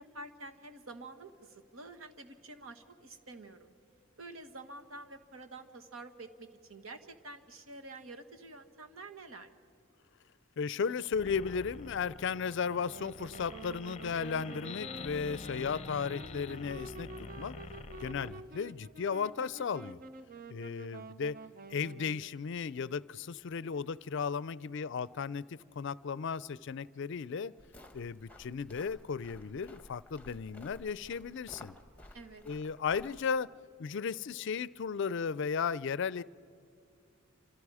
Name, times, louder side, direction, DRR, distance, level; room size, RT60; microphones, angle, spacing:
voice 1, 0.0-3.7 4.2-9.5 32.1-32.4, right 2 dB, 75° right, 6 dB, 1.6 m, -48 dB
voice 2, 10.6-17.1 17.4-17.6 18.0-20.0 20.5-21.4 21.7-27.5 27.9-31.8 32.5-33.5 33.8-36.2, left 6 dB, 60° left, 19 dB, 0.4 m, -35 dB
sound 1, 11.1-18.3, left 4 dB, 30° left, 0.7 m, -46 dB
Wind instrument woodwind instrument, 12.7-22.4, right 3 dB, 40° right, 0.6 m, -49 dB
sound 2, 27.6-33.2, left 1 dB, 5° left, 1.3 m, -54 dB
28.0 x 26.0 x 4.9 m, 2.5 s
head